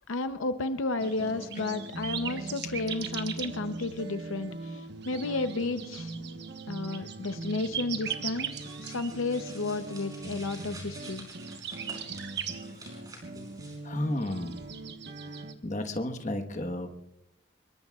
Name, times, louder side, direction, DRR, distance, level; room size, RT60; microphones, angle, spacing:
voice 1, 0.1-6.1 6.7-8.5 8.8-11.3, left 3 dB, 80° left, 10 dB, 0.7 m, -32 dB
sound 1, 1.0-15.5, right 5 dB, 55° right, 1.3 m, -39 dB
sound 2, 8.5-13.8, right 2 dB, 20° right, 4.8 m, -49 dB
voice 2, 13.8-14.6 15.6-17.0, left 1 dB, 35° left, 6 dB, 1.3 m, -32 dB
25.0 x 22.0 x 2.4 m, 0.85 s
head